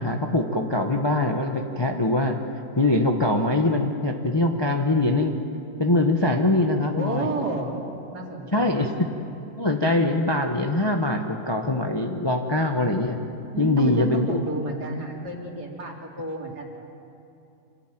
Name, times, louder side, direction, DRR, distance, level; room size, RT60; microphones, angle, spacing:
voice 1, 0.0-2.4 2.8-5.3 5.8-7.3 8.5-8.9 9.6-13.2 13.6-14.4, left 2 dB, 20° left, 3 dB, 0.8 m, -23 dB
voice 2, 6.9-7.8 8.1-8.9 13.5-16.6, right 2 dB, 55° right, -1 dB, 3.5 m, -31 dB
26.5 x 16.5 x 9.1 m, 2.7 s
omnidirectional pair, 2.1 m